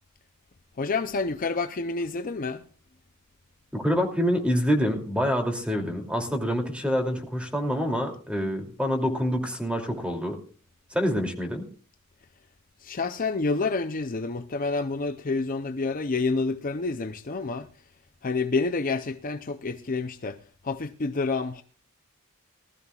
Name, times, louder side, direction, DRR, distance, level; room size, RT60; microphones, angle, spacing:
voice 1, 0.8-2.6 12.8-17.7 18.2-20.4 20.6-21.6, left 3 dB, 40° left, 0.6 m, -28 dB
voice 2, 3.7-10.4 10.9-11.6, equal, 5° right, 2.7 m, -26 dB
20.0 x 13.5 x 2.4 m
head